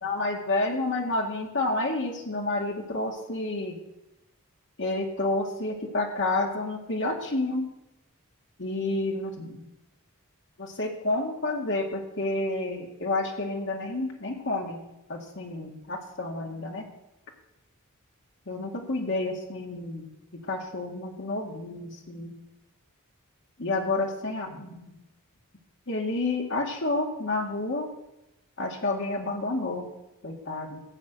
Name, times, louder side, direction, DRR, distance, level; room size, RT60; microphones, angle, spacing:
voice 1, 0.0-3.8 4.8-7.7 8.6-9.6 10.6-14.8 15.1-16.9 18.5-22.3 23.6-24.8 25.9-27.9 28.6-29.9 30.2-30.8, left 2 dB, 55° left, 1 dB, 2.1 m, -30 dB
15.5 x 5.9 x 8.1 m, 0.92 s
head